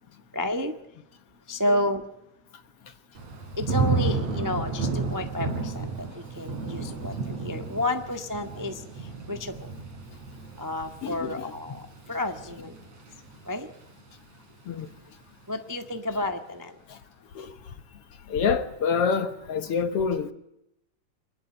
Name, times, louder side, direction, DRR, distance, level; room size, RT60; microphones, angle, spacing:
voice 1, 0.3-0.7 1.5-2.0 3.6-5.9 6.4-8.8 9.3-9.6 10.6-11.8 12.1-12.7 13.5-13.7 15.5-16.7, left 1 dB, 20° right, 0.4 m, -30 dB
Thunder / Rain, 3.1-14.1 14.5-15.0, right 4 dB, 55° right, 4.6 m, -32 dB
voice 2, 11.0-11.5 14.7-14.9 16.9-17.0 17.4-17.5 18.3-20.3, left 6 dB, 60° left, 1.8 m, -27 dB
25.5 x 20.0 x 9.0 m
omnidirectional pair, 3.7 m